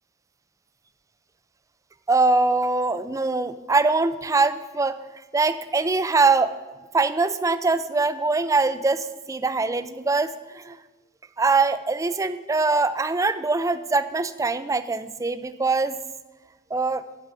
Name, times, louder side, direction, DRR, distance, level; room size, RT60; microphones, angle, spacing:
voice 1, 2.1-5.0 5.3-6.5 6.9-10.8 11.4-16.0 16.7-17.0, right 3 dB, 15° right, 12 dB, 0.4 m, -23 dB
11.0 x 5.4 x 7.5 m, 1.2 s
head